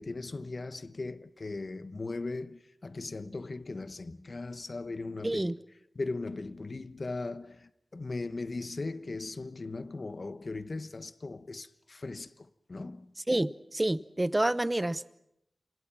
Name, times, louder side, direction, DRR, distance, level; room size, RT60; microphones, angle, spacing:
voice 1, 0.0-5.6 5.9-13.1, left 3 dB, 55° left, 1.1 m, -38 dB
voice 2, 5.2-5.6 13.3-15.2, right 1 dB, 20° right, 0.9 m, -28 dB
29.0 x 26.0 x 6.0 m
wide cardioid pair, 90°, 0 cm